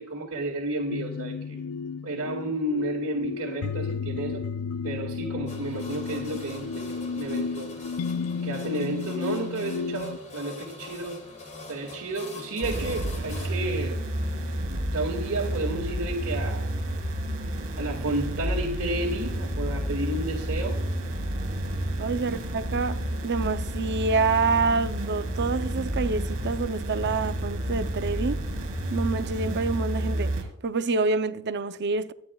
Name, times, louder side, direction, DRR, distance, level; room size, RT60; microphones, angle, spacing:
voice 1, 0.0-1.6 2.0-4.4 4.8-7.7 8.4-11.2 11.7-14.0 14.9-16.7 17.8-20.8, right 2 dB, 85° right, 2.1 m, -31 dB
sound 1, 0.9-10.2, left 5 dB, 75° left, 0.4 m, -33 dB
sound 2, 5.5-13.6, left 3 dB, 35° left, 2.6 m, -43 dB
sound 3, 12.6-30.4, right 1 dB, 65° right, 3.5 m, -30 dB
voice 2, 22.0-28.4 28.9-30.3 30.6-32.1, right 4 dB, 50° right, 0.6 m, -27 dB
24.5 x 9.8 x 2.3 m
head